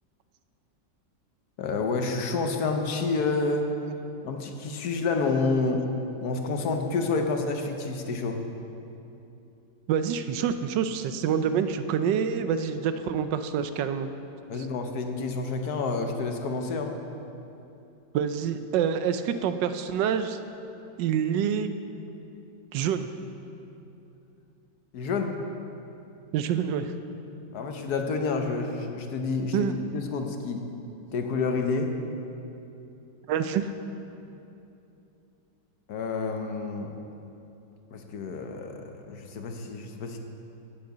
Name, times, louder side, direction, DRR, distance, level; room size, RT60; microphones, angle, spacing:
voice 1, 1.6-3.7 4.2-5.9 6.2-8.4 14.5-16.9 24.9-25.4 27.5-30.7 31.1-31.9 35.9-36.9 37.9-40.2, left 4 dB, 65° left, 4 dB, 1.2 m, -29 dB
voice 2, 9.9-14.1 18.1-20.4 21.0-21.7 22.7-23.1 26.3-26.9 29.5-29.7 33.3-33.7, right 8 dB, 80° right, 10 dB, 1.2 m, -27 dB
8.9 x 7.5 x 7.9 m, 2.8 s
omnidirectional pair, 1.9 m